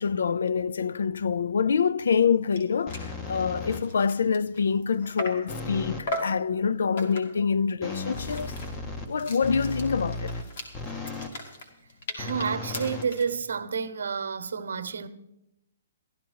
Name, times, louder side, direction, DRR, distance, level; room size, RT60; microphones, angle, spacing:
voice 1, 0.0-8.5 9.1-10.3, left 6 dB, 75° left, 0.4 m, -26 dB
sound 1, 2.2-2.3 2.5-2.6 2.9-3.1 3.6-5.5 6.1-6.4 7.0-7.4 7.9-13.3, left 1 dB, 50° left, 2.2 m, -38 dB
sound 2, 2.9-4.1 5.5-6.1 7.8-11.4 12.2-13.7, left 3 dB, 15° left, 0.7 m, -36 dB
voice 2, 12.2-15.1, right 6 dB, 75° right, 1.0 m, -30 dB
14.5 x 12.0 x 4.6 m
hypercardioid pair, 175°, 0 cm